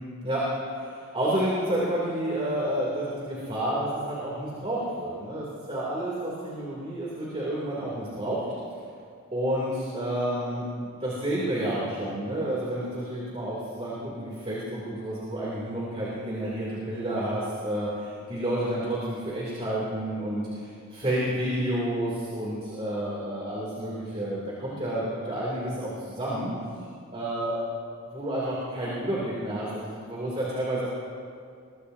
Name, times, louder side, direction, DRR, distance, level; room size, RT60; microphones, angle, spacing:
voice 1, 0.8-8.4 9.3-26.5 27.1-27.6 28.1-30.9, right 1 dB, 30° right, -6 dB, 3.0 m, -30 dB
22.0 x 22.0 x 2.8 m, 2.3 s
head